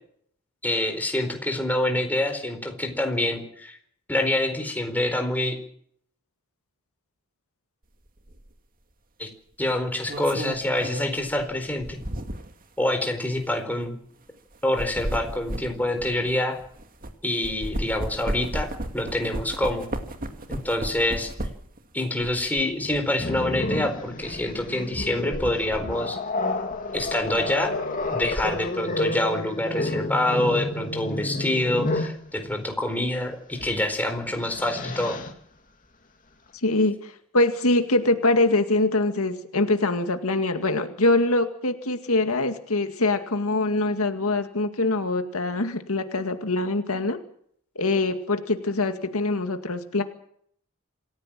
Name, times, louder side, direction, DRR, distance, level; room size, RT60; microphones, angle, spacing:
voice 1, 0.6-3.8 4.1-5.5 9.2-9.3 9.6-12.0 12.8-14.0 14.6-16.6 17.2-19.9 20.5-21.3 21.9-26.2 26.9-27.7 28.1-35.2, left 1 dB, 10° left, 4 dB, 4.4 m, -26 dB
sound 1, 8.3-8.5 9.7-12.6 13.3-13.5 14.5-17.1 17.4-21.8 22.2-23.0, right 1 dB, 40° right, 2.3 m, -34 dB
Growling, 23.2-32.2 33.6-33.8 34.2-35.3, left 2 dB, 40° left, 2.9 m, -30 dB
voice 2, 36.6-47.2 47.8-50.0, left 2 dB, 85° left, 7 dB, 2.1 m, -24 dB
27.0 x 15.0 x 7.5 m, 0.64 s
head